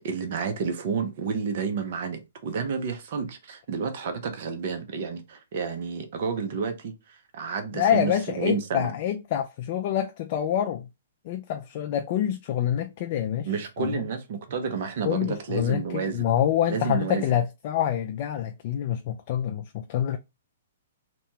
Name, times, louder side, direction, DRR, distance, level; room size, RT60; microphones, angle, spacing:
voice 1, 0.0-8.9 13.5-16.3 16.7-17.3, right 5 dB, 55° right, 0.7 m, -30 dB
voice 2, 7.7-10.9 11.2-13.5 13.8-14.0 15.1-20.2, left 10 dB, 45° left, 0.3 m, -26 dB
2.8 x 2.3 x 2.8 m
hypercardioid pair, 145°, 0 cm